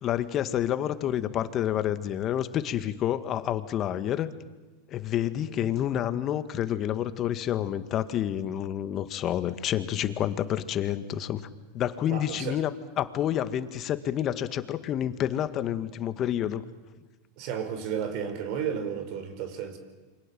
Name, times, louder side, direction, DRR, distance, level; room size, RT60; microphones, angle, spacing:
voice 1, 0.0-4.3 4.9-11.4 11.7-12.7 13.0-16.6, left 11 dB, 40° left, 11 dB, 1.8 m, -29 dB
voice 2, 5.4-5.7 12.1-12.6 17.4-19.8, right 8 dB, 55° right, 9 dB, 5.1 m, -33 dB
28.5 x 25.0 x 7.7 m, 1.2 s
hypercardioid pair, 105°, 0 cm